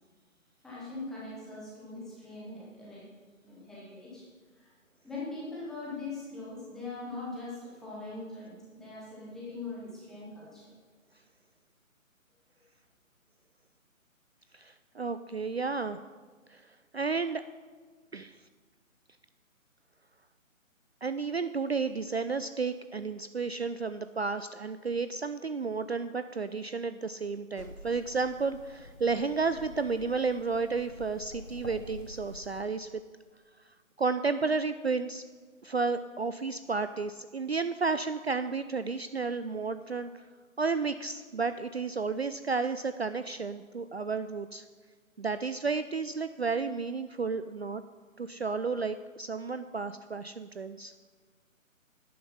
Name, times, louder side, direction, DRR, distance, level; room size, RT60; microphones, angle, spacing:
voice 1, 0.6-3.0 3.4-4.2 4.5-4.7 5.0-10.7, left 3 dB, ahead, -8 dB, 1.1 m, -41 dB
voice 2, 14.5-16.0 16.5-16.6 16.9-17.4 18.1-18.4 21.0-32.9 34.0-35.2 35.6-40.1 40.6-44.6 45.2-47.8 48.2-50.9, right 4 dB, 50° right, 11 dB, 0.5 m, -32 dB
sound 1, 27.6-32.6, left 2 dB, 90° left, 2.5 m, -48 dB
12.0 x 9.5 x 5.6 m, 1.5 s
figure-of-eight pair, 150°, 41 cm